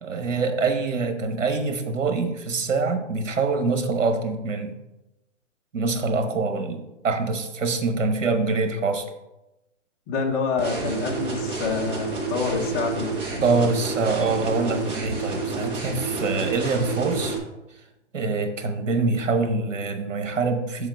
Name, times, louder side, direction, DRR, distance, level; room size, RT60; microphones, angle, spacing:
voice 1, 0.0-4.8 5.7-9.1 13.4-17.4 18.1-20.9, right 4 dB, 90° right, 6 dB, 1.1 m, -25 dB
voice 2, 10.1-13.2, left 5 dB, 20° left, 1 dB, 0.7 m, -27 dB
sound 1, 10.6-17.4, right 3 dB, 15° right, 0.8 m, -29 dB
6.8 x 3.8 x 4.6 m, 0.96 s
hypercardioid pair, 155°, 37 cm